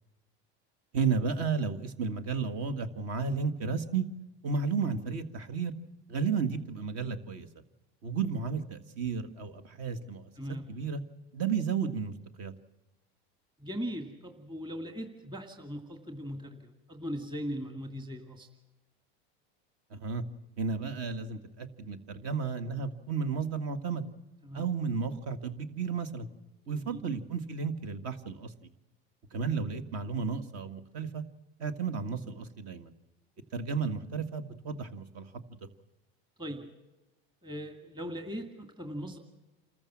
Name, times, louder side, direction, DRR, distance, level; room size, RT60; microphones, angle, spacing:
voice 1, 0.9-4.1 4.4-5.7 6.1-7.5 8.0-10.3 10.7-11.0 11.3-12.5 19.9-20.2 20.6-24.0 24.5-26.3 26.7-28.5 29.3-31.2 31.6-32.9 33.5-35.3, right 5 dB, 55° right, 11 dB, 1.9 m, -33 dB
voice 2, 10.4-10.7 13.6-18.5 24.4-24.7 26.7-27.0 36.4-36.7 37.4-39.2, equal, 15° right, 5 dB, 2.3 m, -39 dB
27.5 x 14.5 x 7.4 m, 1.1 s
supercardioid pair, 115°, 31 cm